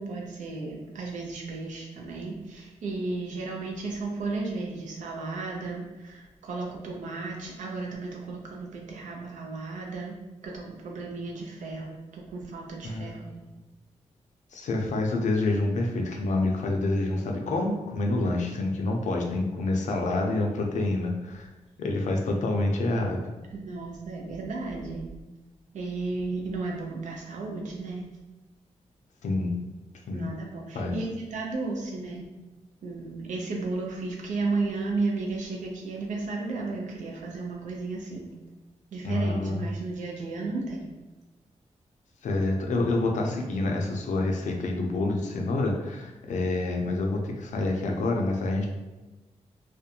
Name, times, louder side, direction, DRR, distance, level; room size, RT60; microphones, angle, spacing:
voice 1, 0.0-10.2 10.4-13.3 18.2-18.3 23.5-25.1 25.7-28.1 30.1-32.3 32.8-38.3 38.9-40.9, right 3 dB, 80° right, -1 dB, 0.6 m, -34 dB
voice 2, 12.8-13.3 14.5-21.5 21.8-23.3 29.2-29.7 30.1-30.3 30.7-31.0 39.0-39.7 42.2-48.7, left 2 dB, 80° left, 2 dB, 0.5 m, -27 dB
2.4 x 2.1 x 2.7 m, 1.1 s
cardioid pair, 85°, 12 cm